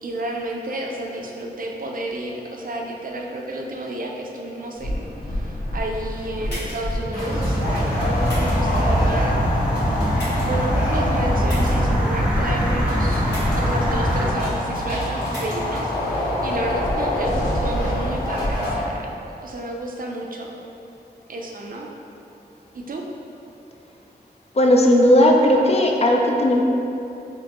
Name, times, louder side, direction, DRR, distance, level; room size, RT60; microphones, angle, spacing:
voice 1, 0.0-5.1 5.3-9.4 10.5-15.9 16.2-19.1 19.4-20.5 21.3-21.9 22.7-23.0, right 1 dB, 55° right, 0 dB, 0.5 m, -31 dB
sound 1, 4.8-18.7, left 1 dB, 55° left, 1.5 m, -26 dB
sound 2, 6.5-6.9 8.2-8.7 10.1-10.6 11.5-11.7 13.3-13.7 15.2-15.6, equal, 80° left, 1.2 m, -36 dB
sound 3, 7.3-14.3, equal, 5° right, 0.6 m, -22 dB
voice 2, 24.6-26.6, left 1 dB, 40° left, 1 dB, 0.4 m, -16 dB
4.3 x 2.7 x 2.9 m, 2.8 s
wide cardioid pair, 65°, 17 cm